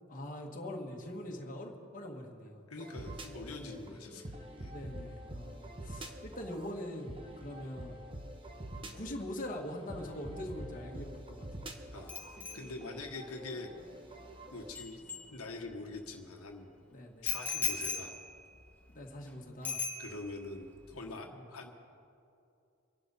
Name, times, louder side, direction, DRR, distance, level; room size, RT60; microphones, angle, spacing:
voice 1, 0.1-2.6 3.6-3.8 4.6-8.0 8.9-11.5 16.9-17.3 18.9-19.8 21.3-21.4, left 1 dB, 35° left, -1 dB, 1.7 m, -43 dB
voice 2, 2.7-4.7 11.9-14.0 14.5-15.0 15.3-16.7 17.2-18.1 20.0-21.7, left 3 dB, 85° left, 2 dB, 1.4 m, -44 dB
sound 1, 2.8-14.8, right 1 dB, 25° right, 1.0 m, -46 dB
Bicycle bell, 12.1-15.9 17.3-19.3 19.6-20.5 20.8-21.1, left 5 dB, 10° left, 1.3 m, -40 dB
25.5 x 11.5 x 4.2 m, 2.6 s
head